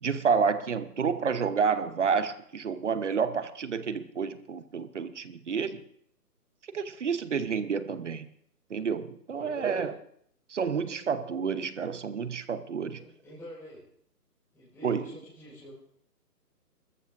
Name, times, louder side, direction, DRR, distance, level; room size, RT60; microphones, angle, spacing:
voice 1, 0.0-5.8 6.7-8.2 8.7-10.0 10.5-13.0 14.8-15.1, right 6 dB, 50° right, 12 dB, 1.0 m, -29 dB
voice 2, 9.3-9.8 10.9-11.0 12.9-13.8 14.5-15.7, equal, 5° left, -11 dB, 4.5 m, -48 dB
22.0 x 13.5 x 2.6 m, 0.66 s
hypercardioid pair, 160°, 48 cm